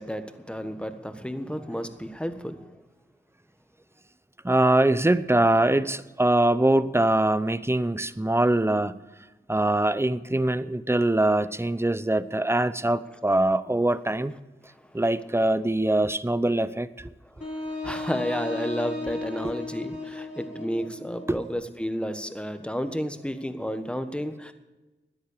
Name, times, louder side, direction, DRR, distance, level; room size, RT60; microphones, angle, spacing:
voice 1, 0.0-2.6 17.8-24.5, equal, 5° left, 8 dB, 1.3 m, -31 dB
voice 2, 4.4-9.0 9.5-14.3 14.9-17.1 17.8-17.9 21.3-21.4, right 1 dB, 15° right, 15 dB, 0.6 m, -23 dB
Wind instrument woodwind instrument, 17.4-21.4, left 2 dB, 40° left, 3.3 m, -35 dB
13.5 x 10.0 x 6.7 m, 1.1 s
cardioid pair, 40°, 20 cm